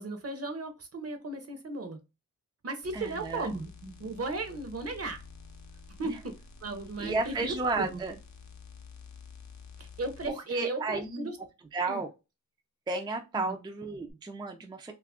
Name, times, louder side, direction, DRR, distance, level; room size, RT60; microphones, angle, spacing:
voice 1, 0.0-2.0 2.6-5.2 6.0-6.3 6.6-8.0 9.8-11.3 11.9-12.0 13.5-13.6, right 3 dB, 45° right, 6 dB, 0.7 m, -36 dB
sound 1, 2.8-10.3 14.1-14.2, left 5 dB, 60° left, 0.6 m, -50 dB
voice 2, 2.9-3.5 6.0-6.2 7.0-8.2 10.3-11.3 11.7-12.1 12.9-14.9, right 3 dB, 15° right, 3 dB, 0.4 m, -33 dB
2.7 x 2.4 x 3.5 m, 0.27 s
wide cardioid pair, 105°, 32 cm